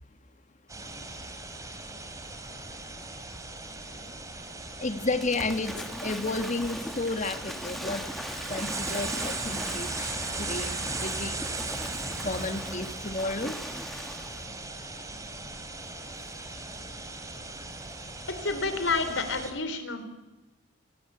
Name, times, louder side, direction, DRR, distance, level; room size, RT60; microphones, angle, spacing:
sound 1, 0.7-19.5, right 2 dB, 20° right, 3.3 m, -38 dB
voice 1, 4.8-11.4 12.2-13.6, left 2 dB, 40° left, 9 dB, 1.8 m, -32 dB
Waves surf / Splash splatter, 5.2-14.5, equal, ahead, 1.9 m, -40 dB
voice 2, 18.3-20.1, left 3 dB, 80° left, 9 dB, 4.0 m, -29 dB
30.0 x 19.5 x 8.4 m, 1.1 s
head